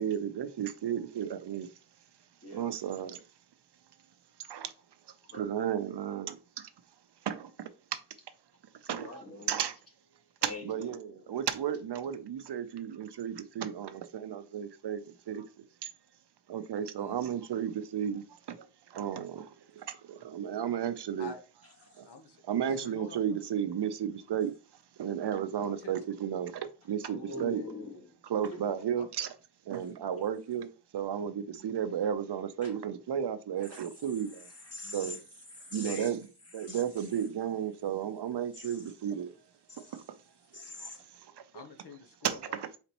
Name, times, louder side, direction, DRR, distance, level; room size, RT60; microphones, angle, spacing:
voice 1, 0.0-1.7 2.5-3.2 4.5-4.7 5.3-6.4 7.3-7.5 8.9-9.8 10.4-15.0 15.3-15.4 16.5-18.6 18.9-19.4 19.9-21.3 22.0-22.1 22.5-24.5 25.0-27.6 28.2-29.3 29.7-30.7 30.9-34.4 34.9-35.2 35.7-36.3 36.5-39.3 39.9-40.0 42.2-42.4, right 9 dB, 75° right, 0.6 m, -33 dB
voice 2, 5.2-5.5 8.9-9.6 10.4-11.4 21.6-22.1 27.0-28.1 28.4-28.6 29.8-29.9 32.6-32.8 33.6-33.8 34.1-35.2 35.5-36.2 36.4-37.2 38.5-38.9 39.7-40.0 40.5-41.0, left 2 dB, 35° left, 1.6 m, -45 dB
voice 3, 17.0-17.3 21.2-21.4 22.0-23.4 23.8-23.9 25.6-26.0 27.5-27.7 29.0-29.1 31.5-31.9 34.8-35.2 41.5-42.6, left 3 dB, 70° left, 0.8 m, -49 dB
4.3 x 4.0 x 2.9 m
wide cardioid pair, 115°, 41 cm